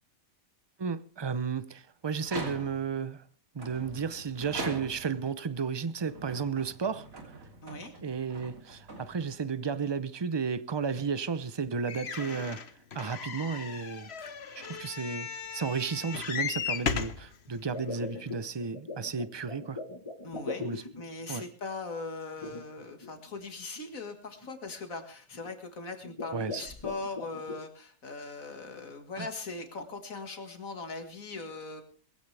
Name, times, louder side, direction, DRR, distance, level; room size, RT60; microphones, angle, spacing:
voice 1, 0.8-3.2 3.5-7.1 8.0-12.6 12.9-14.1 14.6-15.3 15.5-19.8 20.6-20.8 21.3-21.4 26.3-26.6 29.2-29.3, right 5 dB, 40° right, 0.3 m, -33 dB
sound 1, 2.2-3.0 3.6-5.3 5.9-9.5, right 2 dB, 65° right, 3.5 m, -42 dB
voice 2, 7.6-7.9 20.2-31.8, left 3 dB, 70° left, 2.2 m, -40 dB
sound 2, 11.9-17.2 17.9-18.0 18.3-18.4, left 6 dB, 50° left, 1.2 m, -36 dB
sound 3, 17.7-21.2 22.4-23.1 23.8-23.9 24.4-24.7 25.3-25.6 26.0-27.6, left 3 dB, 20° left, 1.3 m, -40 dB
20.5 x 16.0 x 3.4 m
omnidirectional pair, 1.5 m